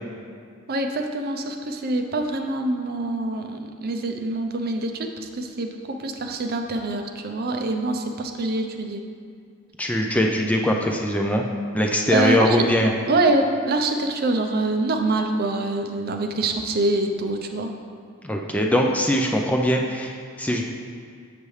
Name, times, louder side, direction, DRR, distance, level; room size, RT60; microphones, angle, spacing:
voice 1, 0.7-9.0 12.1-12.6 13.1-17.7, right 2 dB, 45° right, 4 dB, 0.5 m, -25 dB
voice 2, 9.8-11.4 11.7-12.9 18.2-20.6, equal, 5° left, 1 dB, 0.4 m, -21 dB
6.9 x 6.6 x 3.2 m, 2.2 s
head